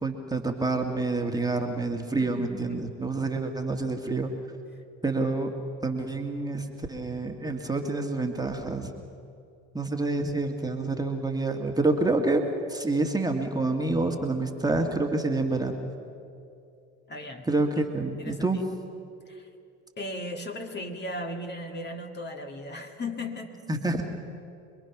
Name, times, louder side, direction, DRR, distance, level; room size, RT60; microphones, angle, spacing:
voice 1, 0.0-4.3 5.0-5.5 5.8-8.9 9.7-12.4 12.7-15.8 17.5-18.6 23.7-24.1, right 3 dB, 10° right, 2 dB, 2.0 m, -27 dB
voice 2, 2.2-2.9 17.1-17.5 17.7-17.8 18.2-18.6 19.3-19.5 20.0-23.7, left 1 dB, 30° left, 3 dB, 2.2 m, -37 dB
26.5 x 21.5 x 6.1 m, 2.5 s
hypercardioid pair, 80°, 35 cm